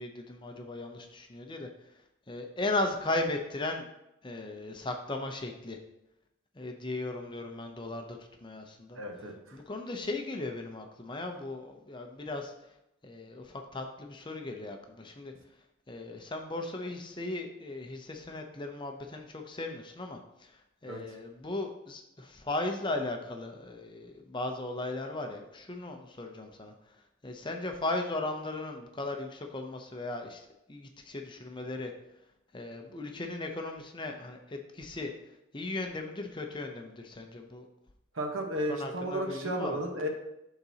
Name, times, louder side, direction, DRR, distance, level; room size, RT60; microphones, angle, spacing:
voice 1, 0.0-1.7 2.3-3.9 4.2-5.8 6.6-9.0 9.5-12.5 13.0-15.3 15.9-26.7 27.2-31.9 32.5-35.1 35.5-37.7 38.7-39.8, left 2 dB, 20° left, 3 dB, 0.6 m, -37 dB
voice 2, 8.9-9.6 20.9-21.0 38.1-40.1, right 1 dB, 70° right, 3 dB, 1.1 m, -33 dB
11.5 x 4.0 x 2.8 m, 0.86 s
head